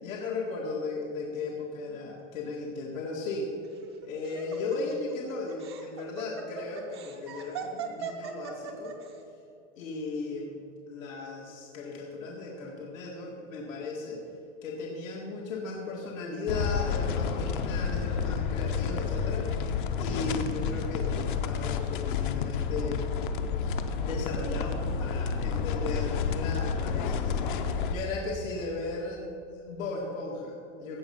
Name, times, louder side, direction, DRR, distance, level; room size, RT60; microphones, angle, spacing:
voice 1, 0.0-3.5 4.0-8.9 9.8-10.6 10.9-14.2 14.6-19.7 20.0-23.0 24.0-29.2 29.5-31.0, left 3 dB, 85° left, -2 dB, 1.9 m, -36 dB
Laughter, 3.6-9.1, right 6 dB, 25° right, 0.3 m, -39 dB
sound 1, 16.5-27.9, left 6 dB, 40° left, 0.6 m, -30 dB
16.0 x 5.7 x 5.6 m, 2.7 s
supercardioid pair, 175°, 39 cm